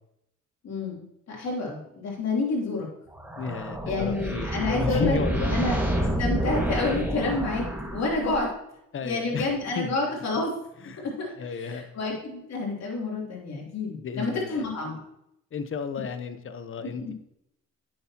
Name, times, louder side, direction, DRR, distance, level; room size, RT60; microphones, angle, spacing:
voice 1, 0.6-1.0 1.3-2.9 3.8-5.2 5.4-7.6 7.9-8.5 9.0-10.5 11.0-11.3 11.6-15.0 16.8-17.1, left 3 dB, 60° left, -3 dB, 3.3 m, -29 dB
sound 1, 3.1-8.6, right 1 dB, 5° right, 1.9 m, -29 dB
voice 2, 3.4-5.6 8.9-9.5 9.7-9.9 10.8-11.1 11.4-11.9 13.9-14.7 15.5-17.1, left 5 dB, 45° left, 10 dB, 0.9 m, -33 dB
10.0 x 7.6 x 2.9 m, 0.80 s
cardioid pair, 90°, 30 cm